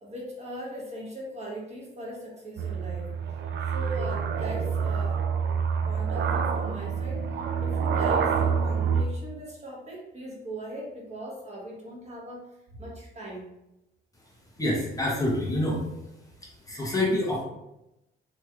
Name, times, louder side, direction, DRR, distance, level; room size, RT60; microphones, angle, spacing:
voice 1, 0.0-3.1 3.7-5.2 5.8-12.5 12.8-13.4, right 1 dB, 35° right, -3 dB, 1.2 m, -39 dB
sound 1, 2.6-9.0, right 6 dB, 65° right, 0.4 m, -27 dB
voice 2, 14.6-15.9 16.6-17.4, left 1 dB, 15° left, -3 dB, 0.9 m, -26 dB
3.0 x 2.9 x 2.4 m, 0.90 s
cardioid pair, 90°, 20 cm